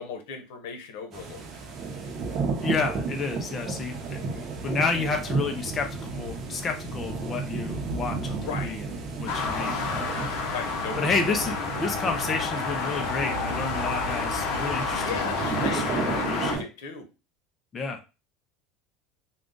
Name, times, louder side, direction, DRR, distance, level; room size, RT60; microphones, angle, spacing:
voice 1, 0.0-1.6 8.4-8.8 10.5-11.5 15.0-17.1, left 5 dB, 85° left, 6 dB, 1.0 m, -37 dB
sound 1, 1.1-16.6, right 4 dB, 35° right, 0.8 m, -33 dB
voice 2, 2.6-8.8 9.2-10.1 11.0-15.0 15.5-16.6 17.7-18.1, left 4 dB, 20° left, 4 dB, 0.5 m, -30 dB
sound 2, 3.8-16.0, right 1 dB, 80° right, 0.9 m, -45 dB
sound 3, 9.3-16.6, left 4 dB, 60° left, 0.9 m, -30 dB
3.8 x 2.3 x 3.7 m, 0.29 s
cardioid pair, 165°, 0 cm